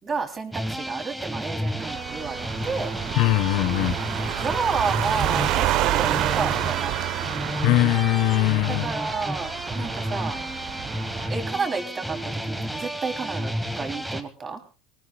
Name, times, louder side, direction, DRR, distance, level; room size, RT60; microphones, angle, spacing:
voice 1, 0.0-2.9 4.3-6.9 8.7-10.4 11.3-14.6, right 4 dB, 20° right, 3.1 m, -31 dB
sound 1, 0.5-14.2, equal, ahead, 1.4 m, -31 dB
sound 2, 1.8-11.3, right 15 dB, 50° right, 0.7 m, -29 dB
voice 2, 3.2-4.0 7.6-8.8, left 18 dB, 55° left, 0.8 m, -21 dB
23.0 x 21.0 x 2.3 m
cardioid pair, 160°, 0 cm